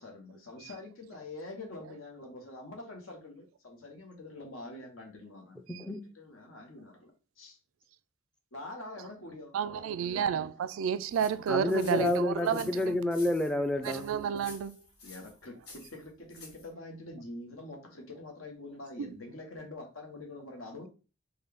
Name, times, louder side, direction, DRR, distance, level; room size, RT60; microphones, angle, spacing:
voice 1, 0.0-5.6 6.1-7.6 8.5-10.3 15.0-20.9, left 2 dB, 90° left, 1.0 m, -45 dB
voice 2, 5.7-6.0 11.5-14.1, left 1 dB, 5° left, 0.3 m, -29 dB
voice 3, 9.5-13.0 13.8-14.8 19.0-19.1, right 7 dB, 85° right, 0.3 m, -31 dB
sound 1, 11.1-16.7, left 3 dB, 55° left, 1.9 m, -51 dB
3.8 x 2.2 x 3.4 m
head